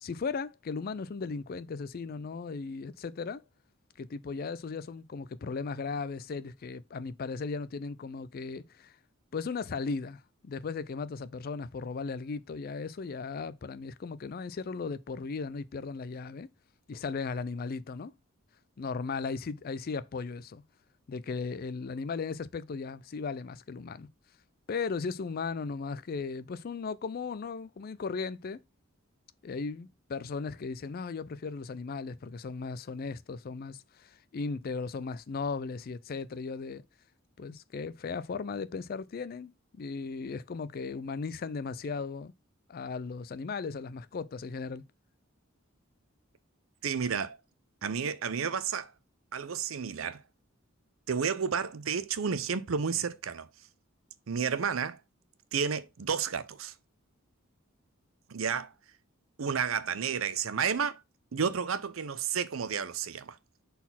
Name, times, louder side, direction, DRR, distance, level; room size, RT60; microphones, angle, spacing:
voice 1, 0.0-3.4 4.0-8.9 9.3-16.5 16.9-18.1 18.8-20.6 21.1-24.1 24.7-28.6 29.4-36.8 37.4-42.3 42.7-44.8, left 4 dB, 45° left, 0.4 m, -36 dB
voice 2, 46.8-47.4 47.8-48.9 49.3-50.2 51.1-53.5 54.3-55.0 55.5-56.7 58.3-58.7 59.4-61.0 61.3-63.4, right 6 dB, 75° right, 0.6 m, -31 dB
4.2 x 4.0 x 5.6 m
head